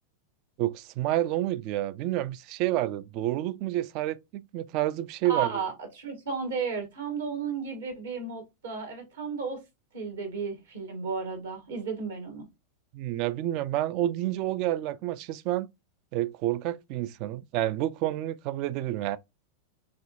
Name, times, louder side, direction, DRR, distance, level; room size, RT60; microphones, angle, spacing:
voice 1, 0.6-5.5 12.9-15.7 16.1-19.2, right 14 dB, 40° right, 0.4 m, -29 dB
voice 2, 5.3-9.6 9.9-12.5, right 5 dB, 65° right, 1.8 m, -33 dB
4.8 x 3.3 x 2.5 m
figure-of-eight pair, 90°, 0 cm